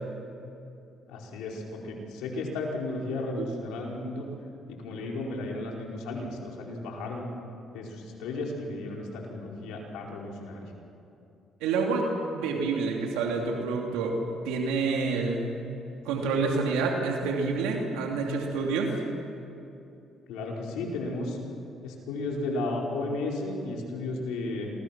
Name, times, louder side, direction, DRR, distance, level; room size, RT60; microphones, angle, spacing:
voice 1, 1.1-4.3 4.7-7.3 7.7-10.7 20.3-21.4 21.8-24.7, left 2 dB, 85° left, -1 dB, 4.9 m, -34 dB
voice 2, 11.6-12.1 12.3-14.1 14.4-15.5 16.0-18.9, right 4 dB, 90° right, 1 dB, 2.9 m, -28 dB
28.0 x 23.5 x 6.1 m, 2.8 s
supercardioid pair, 75°, 0 cm